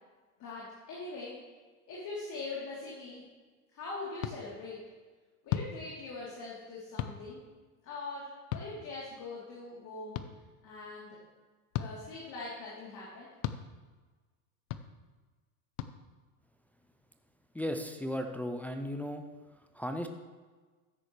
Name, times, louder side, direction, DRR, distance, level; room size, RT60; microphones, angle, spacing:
voice 1, 0.4-1.4 1.9-3.2 3.7-4.8 5.4-7.4 7.8-10.2 10.6-11.2 11.8-13.3, left 3 dB, 40° left, -6 dB, 3.3 m, -42 dB
sound 1, 4.2-4.4 5.5-5.7 7.0-7.2 8.5-8.7 10.1-10.3 11.7-11.9 13.4-13.6 14.7-14.8 15.8-15.9, left 12 dB, 60° left, 0.8 m, -34 dB
voice 2, 17.5-19.2 19.7-20.1, equal, 5° left, 5 dB, 0.3 m, -35 dB
14.0 x 9.6 x 3.2 m, 1.4 s
hypercardioid pair, 110°, 45 cm